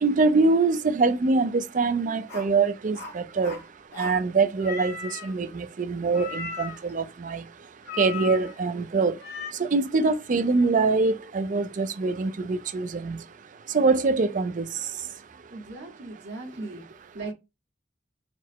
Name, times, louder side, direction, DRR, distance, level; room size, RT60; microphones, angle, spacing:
voice 1, 0.0-3.6 4.0-5.0 5.2-7.4 8.0-9.1 9.6-13.2 13.7-14.7, right 3 dB, 45° right, 0.4 m, -24 dB
sound 1, 2.3-2.5 2.9-3.6 3.9-4.2 4.6-5.3 6.1-6.9 7.9-8.7 9.2-9.5, left 5 dB, 60° left, 1.3 m, -37 dB
voice 2, 15.5-17.3, right 2 dB, 75° right, 1.6 m, -38 dB
4.2 x 2.1 x 4.4 m
head